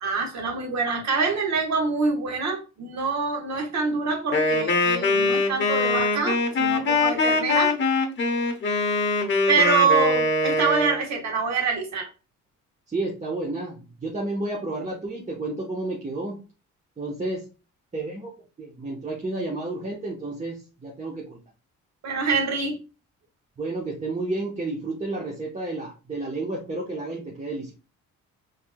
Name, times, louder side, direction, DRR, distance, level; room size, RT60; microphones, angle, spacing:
voice 1, 0.0-7.7 9.5-12.1 22.0-22.8, right 5 dB, 65° right, 2 dB, 1.3 m, -25 dB
Wind instrument woodwind instrument, 4.3-11.0, left 3 dB, 40° left, 0.9 m, -23 dB
voice 2, 12.9-16.4 17.0-17.4 17.9-18.3 18.6-21.4 23.6-27.7, right 2 dB, 25° right, -2 dB, 0.9 m, -31 dB
4.2 x 3.3 x 2.2 m, 0.32 s
cardioid pair, 90°, 30 cm